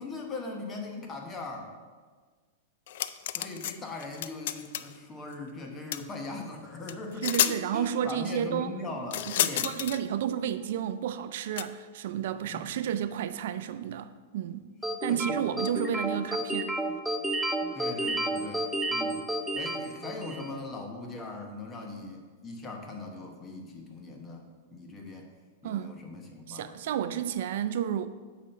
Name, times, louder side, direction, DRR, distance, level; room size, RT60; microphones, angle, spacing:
voice 1, 0.0-1.7 3.3-9.7 12.5-12.7 14.8-15.4 17.7-19.2 19.5-24.4 24.7-25.3 25.6-26.7 27.0-27.2, left 3 dB, 20° left, 1.1 m, -40 dB
sound 1, 2.9-3.7 4.0-4.9 5.9-6.0 6.9-7.0 7.2-7.6 9.1-10.0 11.6-11.7, left 12 dB, 65° left, 0.3 m, -29 dB
voice 2, 7.2-14.7 15.0-16.8 25.6-26.0 26.5-28.1, right 9 dB, 65° right, 0.3 m, -32 dB
sound 2, 14.8-20.6, right 1 dB, ahead, 0.5 m, -31 dB
8.3 x 5.1 x 4.3 m
supercardioid pair, 145°, 0 cm